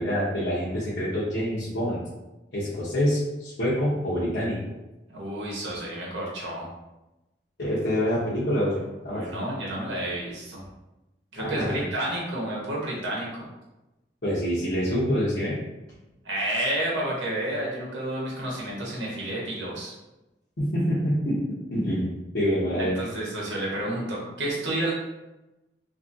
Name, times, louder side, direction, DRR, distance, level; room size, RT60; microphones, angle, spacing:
voice 1, 0.0-2.0 2.5-4.6 7.6-9.2 11.4-11.8 14.2-15.6 20.6-23.0, equal, 70° left, -10 dB, 0.7 m, -26 dB
voice 2, 5.1-6.7 9.1-10.6 11.3-13.5 16.2-19.9 22.8-24.9, right 1 dB, 90° right, -4 dB, 0.9 m, -30 dB
2.8 x 2.5 x 2.5 m, 1.0 s
head